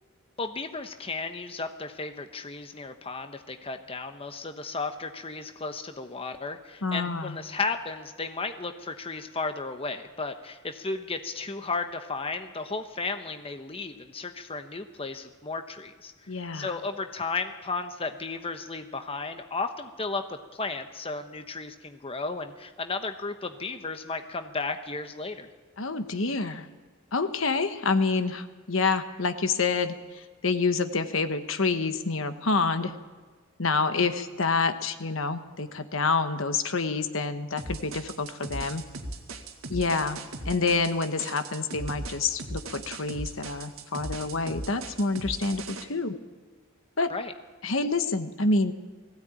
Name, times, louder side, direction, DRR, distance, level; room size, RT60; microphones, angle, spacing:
voice 1, 0.4-16.1 16.5-25.5 47.1-47.3, left 3 dB, 25° left, 7 dB, 1.0 m, -34 dB
voice 2, 6.8-7.4 16.3-16.7 25.8-26.7 27.1-32.9 33.6-38.8 39.7-40.2 40.4-46.2 47.0-47.1 47.6-48.7, left 4 dB, 65° left, 9 dB, 1.2 m, -27 dB
sound 1, 37.6-45.8, right 2 dB, 70° right, 2.0 m, -38 dB
20.0 x 16.0 x 8.9 m, 1.4 s
head